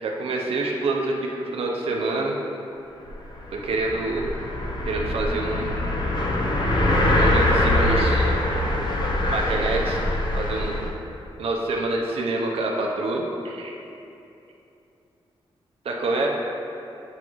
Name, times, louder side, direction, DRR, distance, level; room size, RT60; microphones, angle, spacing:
voice 1, 0.0-2.3 3.5-4.3 4.9-5.8 7.1-8.3 9.3-10.0 10.3-10.8 11.4-13.7 15.8-16.3, right 2 dB, 70° right, -1 dB, 0.6 m, -26 dB
sound 1, 3.1-3.2 3.4-10.9, left 1 dB, 45° left, 0.7 m, -23 dB
8.6 x 3.9 x 3.0 m, 2.8 s
cardioid pair, 90°, 10 cm